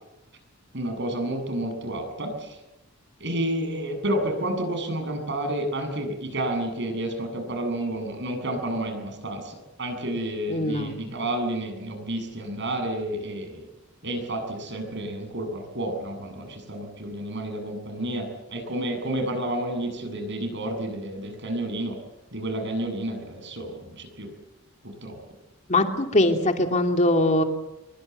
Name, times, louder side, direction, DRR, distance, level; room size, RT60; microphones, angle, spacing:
voice 1, 0.7-2.6 3.2-13.7 14.0-22.0 22.3-24.3 24.8-25.2, right 1 dB, 55° right, 6 dB, 7.5 m, -30 dB
voice 2, 10.5-10.9 25.7-27.4, left 1 dB, 35° left, 4 dB, 2.8 m, -21 dB
25.5 x 23.5 x 8.1 m, 0.97 s
head